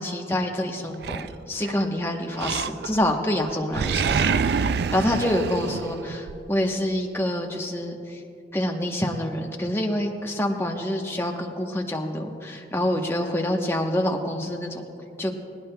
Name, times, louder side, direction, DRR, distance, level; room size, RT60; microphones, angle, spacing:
voice 1, 0.0-8.2 8.5-14.8 15.2-15.3, left 1 dB, 15° left, 2 dB, 0.9 m, -27 dB
Animal, 1.0-1.8 2.4-3.1 3.4-6.4, right 6 dB, 65° right, 0.3 m, -26 dB
20.0 x 18.0 x 2.2 m, 2.6 s
head